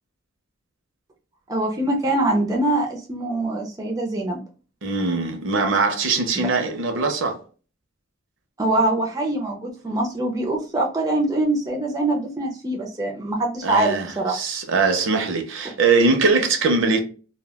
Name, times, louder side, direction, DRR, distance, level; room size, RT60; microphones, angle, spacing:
voice 1, 1.5-4.4 6.3-6.5 8.6-14.3, right 2 dB, 15° right, 0.4 m, -23 dB
voice 2, 4.8-7.4 13.6-17.0, right 4 dB, 65° right, 0.5 m, -21 dB
2.2 x 2.1 x 3.4 m
head